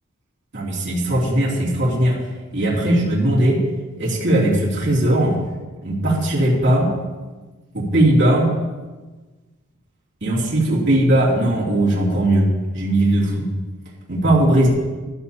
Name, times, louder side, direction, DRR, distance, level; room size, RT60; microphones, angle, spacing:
voice 1, 0.5-2.1 2.5-3.6 4.0-5.4 5.8-6.9 7.7-8.5 10.2-13.5 14.1-14.7, right 1 dB, 50° right, -5 dB, 2.8 m, -18 dB
14.0 x 11.5 x 2.8 m, 1.3 s
head